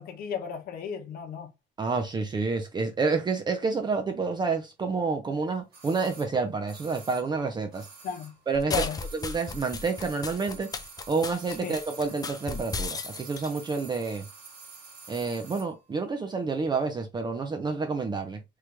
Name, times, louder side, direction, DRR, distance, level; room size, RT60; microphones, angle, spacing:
voice 1, 0.0-1.5 8.0-8.3 8.7-9.0 11.6-11.8, left 7 dB, 60° left, 0.8 m, -34 dB
voice 2, 1.8-7.9 8.5-10.7 11.1-14.3 15.1-18.4, right 4 dB, 25° right, 0.6 m, -29 dB
sound 1, 5.7-8.5 8.7-15.8 16.0-16.1, right 5 dB, 65° right, 1.7 m, -48 dB
sound 2, 8.5-13.5, left 4 dB, 20° left, 0.5 m, -34 dB
3.1 x 2.4 x 3.1 m
cardioid pair, 110°, 17 cm